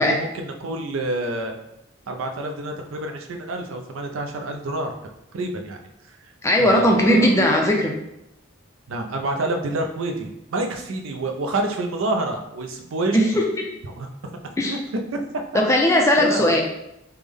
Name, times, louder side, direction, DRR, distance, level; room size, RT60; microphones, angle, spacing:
voice 1, 0.0-1.5 2.1-5.0 5.3-5.8 6.1-6.2 6.6-7.4 8.9-13.2 13.9-14.1 14.6-14.8 15.1-15.2 15.5-15.6 16.2-16.5, right 2 dB, 85° right, 4 dB, 0.5 m, -28 dB
voice 2, 6.4-7.9 13.1-13.4 14.6-14.8 15.5-16.6, left 1 dB, 15° left, 0 dB, 0.4 m, -18 dB
3.3 x 2.1 x 3.5 m, 0.85 s
head